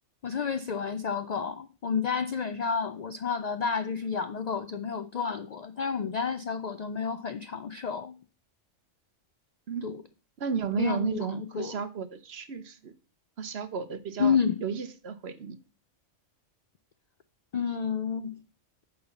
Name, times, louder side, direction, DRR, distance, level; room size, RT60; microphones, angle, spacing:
voice 1, 0.2-8.2 9.8-10.0 10.8-11.8 14.2-14.6 17.5-18.4, left 6 dB, 90° left, 0.3 m, -30 dB
voice 2, 10.4-12.9 13.4-14.4 14.6-15.6, right 6 dB, 60° right, 1.1 m, -33 dB
8.6 x 3.9 x 7.0 m
omnidirectional pair, 1.3 m